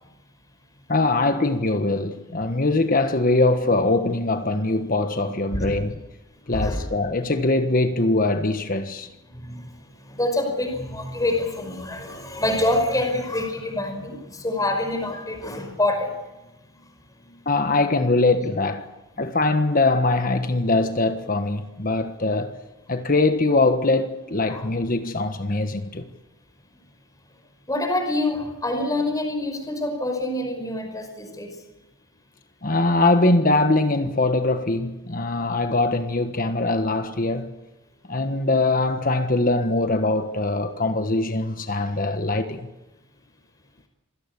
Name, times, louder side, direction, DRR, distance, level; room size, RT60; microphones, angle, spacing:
voice 1, 0.9-6.0 6.5-9.1 17.4-18.9 19.2-22.5 22.9-26.1 32.6-37.5 38.1-42.7, left 2 dB, 45° left, 1.4 m, -22 dB
voice 2, 6.5-6.8 9.3-16.2 16.7-16.8 17.2-17.4 24.5-24.7 27.7-31.6, left 1 dB, 20° left, 5.2 m, -26 dB
26.5 x 18.0 x 8.4 m
head